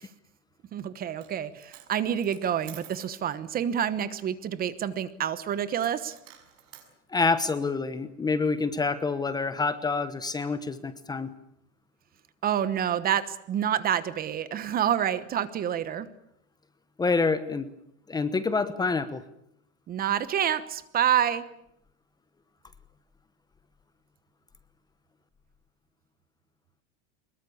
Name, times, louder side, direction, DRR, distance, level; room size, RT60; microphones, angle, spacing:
voice 1, 0.7-6.2 12.4-16.1 19.9-21.4, right 9 dB, 25° right, 15 dB, 1.1 m, -28 dB
Coin (dropping), 1.1-1.4 1.6-3.2 5.8-6.9, right 11 dB, 80° right, 6.1 m, -50 dB
voice 2, 7.1-11.3 17.0-17.7 18.1-19.2, left 4 dB, 10° left, 13 dB, 1.0 m, -27 dB
24.0 x 21.5 x 8.6 m, 0.74 s
supercardioid pair, 155°, 36 cm